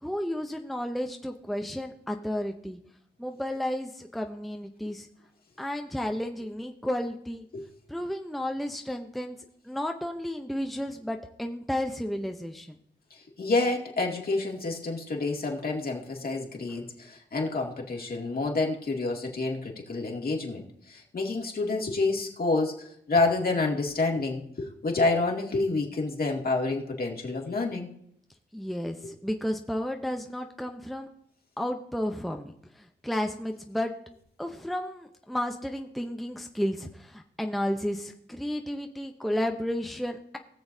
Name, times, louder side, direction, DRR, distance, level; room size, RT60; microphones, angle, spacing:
voice 1, 0.0-2.8 3.2-5.1 5.6-7.4 7.9-9.4 9.7-12.8 28.5-31.1 31.6-32.5 33.0-33.9 34.4-40.4, left 1 dB, ahead, 4 dB, 0.7 m, -32 dB
voice 2, 13.4-27.9 29.0-29.1, left 3 dB, 55° left, 0 dB, 2.2 m, -28 dB
19.5 x 6.9 x 2.7 m, 0.70 s
wide cardioid pair, 85°, 19 cm